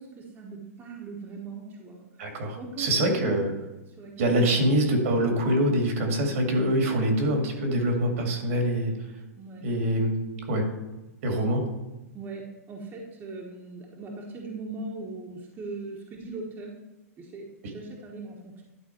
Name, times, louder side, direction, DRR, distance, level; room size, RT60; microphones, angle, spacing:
voice 1, 0.0-2.1 2.5-3.6 3.9-4.7 9.4-9.7 11.3-11.5 12.1-16.7 17.2-18.6, right 3 dB, 25° right, -1 dB, 1.3 m, -40 dB
voice 2, 2.2-3.5 4.2-8.9 9.6-10.1 10.5-10.7 11.2-11.6, right 1 dB, 65° right, 3 dB, 2.1 m, -24 dB
11.0 x 4.2 x 4.4 m, 1.1 s
hypercardioid pair, 130°, 8 cm